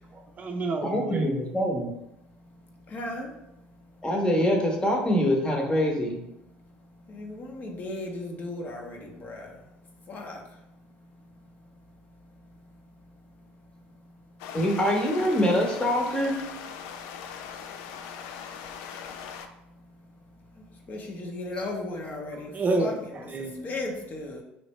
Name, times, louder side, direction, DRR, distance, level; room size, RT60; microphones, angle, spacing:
voice 1, 0.1-1.3 22.3-23.7, right 2 dB, 35° right, 4 dB, 0.5 m, -30 dB
voice 2, 0.8-1.9 4.0-6.2 14.5-16.4, equal, 20° left, 1 dB, 1.0 m, -24 dB
voice 3, 2.9-3.3 7.1-9.5 10.1-10.4 20.9-22.5 22.8-22.9 23.6-24.4, left 2 dB, 40° left, 1 dB, 0.8 m, -35 dB
sound 1, 14.4-19.5, left 7 dB, 75° left, 0.3 m, -40 dB
3.1 x 2.6 x 3.1 m, 0.85 s
supercardioid pair, 80°, 4 cm